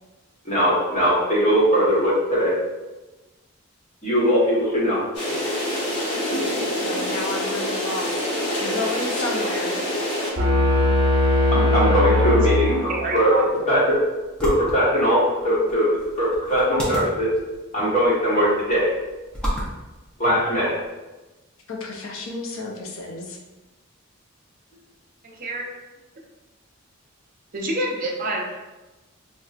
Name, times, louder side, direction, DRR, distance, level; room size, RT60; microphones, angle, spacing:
voice 1, 0.4-2.5 4.0-5.0 11.5-14.0 14.4-17.3 17.7-18.9 20.2-20.8, equal, 35° left, -7 dB, 1.1 m, -20 dB
sound 1, 5.1-10.3, left 1 dB, 85° left, 1.0 m, -26 dB
voice 2, 6.8-9.8 21.7-23.4, left 2 dB, 70° left, 1 dB, 0.6 m, -32 dB
sound 2, 10.4-13.3, left 2 dB, 70° right, 0.9 m, -19 dB
voice 3, 12.0-12.4 12.9-13.4 25.2-25.6 27.5-28.5, right 1 dB, 40° right, -1 dB, 0.6 m, -28 dB
sound 3, 13.3-20.9, equal, 5° left, 0.6 m, -35 dB
4.1 x 2.3 x 2.4 m, 1.1 s
head